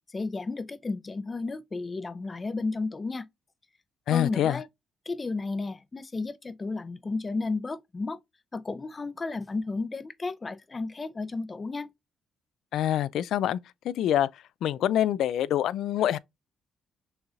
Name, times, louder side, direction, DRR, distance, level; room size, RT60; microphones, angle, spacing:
voice 1, 0.0-3.3 4.1-4.7 5.1-8.2 8.5-11.9, left 3 dB, 30° left, 0.6 m, -33 dB
voice 2, 4.1-4.6 12.7-13.6 13.8-14.3 14.6-16.2, left 11 dB, 75° left, 0.3 m, -25 dB
6.3 x 3.1 x 2.4 m
cardioid pair, 90°, 0 cm